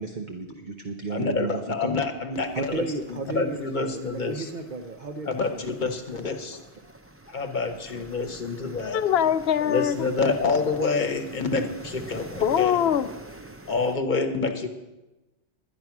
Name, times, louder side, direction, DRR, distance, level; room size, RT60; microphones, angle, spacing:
voice 1, 0.0-2.0 2.5-5.7 6.5-6.7 7.6-8.0, right 4 dB, 45° right, 5 dB, 0.9 m, -34 dB
voice 2, 1.1-4.5 5.3-6.6 7.3-9.0 9.6-12.8 13.7-14.7, left 4 dB, 45° left, 6 dB, 1.1 m, -27 dB
sound 1, 2.3-13.9, right 1 dB, 15° right, 0.6 m, -45 dB
voice 3, 8.9-10.0 12.4-13.1, left 9 dB, 65° left, 11 dB, 0.8 m, -22 dB
11.0 x 10.5 x 5.9 m, 1.1 s
omnidirectional pair, 1.2 m